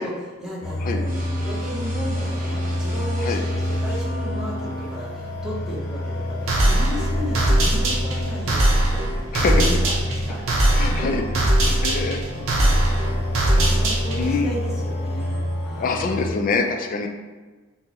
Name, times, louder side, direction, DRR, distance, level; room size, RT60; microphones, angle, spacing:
voice 1, 0.0-10.4 10.8-11.1 12.3-12.8 13.4-16.0 16.5-16.6, equal, 5° right, -6 dB, 0.7 m, -35 dB
sound 1, 0.6-16.3, left 1 dB, 60° left, 0.7 m, -28 dB
sound 2, 1.0-5.0, right 2 dB, 40° right, 0.8 m, -36 dB
sound 3, 6.5-14.3, right 1 dB, 70° right, 0.7 m, -21 dB
voice 2, 9.3-9.7 10.8-11.3 11.6-12.2 13.5-13.7 14.2-14.5 15.8-17.1, left 4 dB, 40° left, 4 dB, 0.3 m, -25 dB
4.3 x 2.0 x 2.8 m, 1.3 s
head